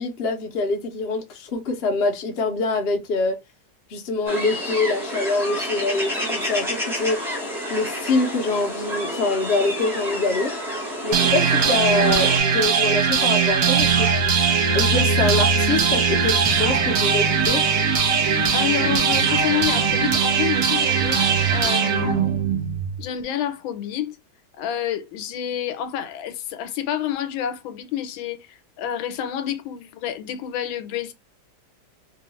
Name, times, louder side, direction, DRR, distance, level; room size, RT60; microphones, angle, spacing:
voice 1, 0.0-3.4 3.9-7.3 7.7-10.5 11.0-14.1 14.7-17.6, left 3 dB, 60° left, 0.6 m, -24 dB
sound 1, 4.3-12.4, equal, 5° right, 0.4 m, -29 dB
sound 2, 11.1-23.1, right 6 dB, 60° right, 1.0 m, -20 dB
voice 2, 18.5-22.3 23.0-24.2 24.6-31.1, left 10 dB, 85° left, 1.4 m, -28 dB
3.0 x 2.4 x 2.9 m
omnidirectional pair, 2.1 m